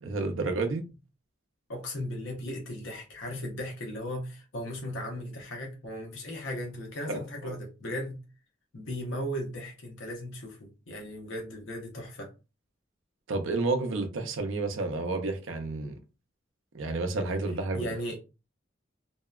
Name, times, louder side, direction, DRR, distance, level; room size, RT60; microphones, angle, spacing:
voice 1, 0.0-0.8 7.0-7.6 13.3-16.0 16.7-17.9, right 3 dB, 90° right, 0.5 m, -30 dB
voice 2, 1.7-8.2 8.7-12.3 17.7-18.2, left 1 dB, 75° left, 0.7 m, -37 dB
2.7 x 2.1 x 2.3 m
head